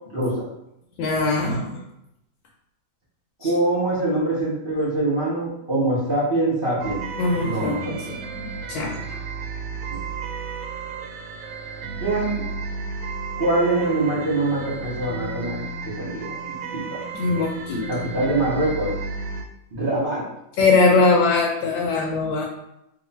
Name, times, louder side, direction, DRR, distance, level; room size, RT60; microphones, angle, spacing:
voice 1, 1.0-1.8 3.4-3.5 7.2-8.2 8.4-9.1 17.1-17.8 20.6-22.4, left 3 dB, 80° left, -1 dB, 1.3 m, -21 dB
voice 2, 3.4-7.1 7.4-8.1 12.0-12.4 13.4-15.6 16.0-16.3 16.7-17.0 17.9-18.9 19.7-20.2, right 2 dB, 35° right, -7 dB, 0.9 m, -24 dB
sound 1, 6.8-19.4, right 4 dB, 80° right, 1.4 m, -33 dB
3.1 x 2.5 x 4.1 m, 0.82 s
omnidirectional pair, 2.1 m